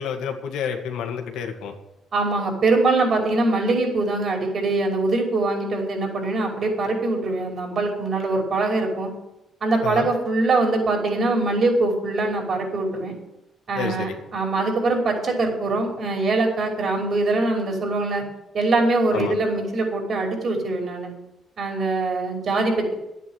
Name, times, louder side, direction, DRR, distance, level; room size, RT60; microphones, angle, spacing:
voice 1, 0.0-1.7 9.8-10.1 13.8-14.2 19.1-19.4, left 7 dB, 90° left, 4 dB, 2.1 m, -29 dB
voice 2, 2.1-9.1 9.6-13.1 13.7-18.2 18.5-21.1 21.6-22.9, right 2 dB, 50° right, 2 dB, 5.5 m, -23 dB
11.5 x 9.3 x 9.2 m, 0.87 s
cardioid pair, 90°, 0 cm